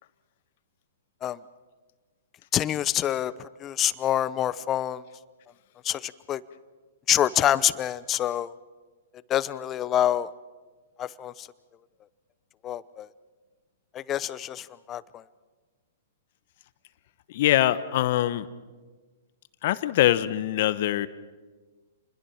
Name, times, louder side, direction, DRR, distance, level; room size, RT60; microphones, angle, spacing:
voice 1, 2.5-5.0 5.8-6.4 7.1-8.5 9.3-10.3 11.0-11.5 12.6-13.1 13.9-15.2, left 11 dB, 25° left, 18 dB, 0.8 m, -26 dB
voice 2, 17.3-18.5 19.6-21.1, left 13 dB, 55° left, 14 dB, 1.1 m, -23 dB
29.0 x 21.5 x 5.9 m, 1.3 s
hypercardioid pair, 120°, 0 cm